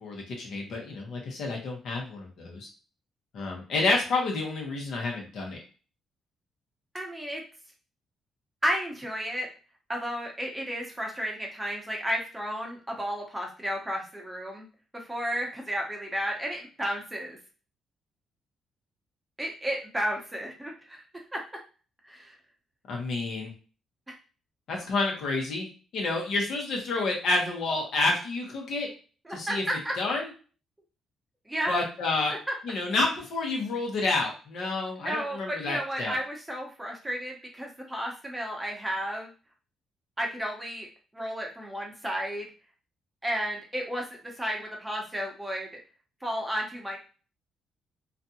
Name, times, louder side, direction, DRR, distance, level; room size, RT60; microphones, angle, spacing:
voice 1, 0.0-2.7 3.3-5.6 22.9-23.5 24.7-25.7 25.9-28.9 29.3-29.6 30.0-30.3 31.7-32.3 32.6-36.2, left 3 dB, 70° left, 0 dB, 1.0 m, -29 dB
voice 2, 6.9-7.4 8.6-9.5 9.9-14.7 14.9-17.4 19.4-21.0 21.3-21.4 22.0-22.4 29.3-29.9 31.5-31.8 32.3-32.4 35.0-39.3 40.2-40.9 41.1-42.5 43.2-45.7 46.2-47.0, equal, 10° right, 0 dB, 0.9 m, -32 dB
2.5 x 2.3 x 2.7 m, 0.37 s
cardioid pair, 90°, 0 cm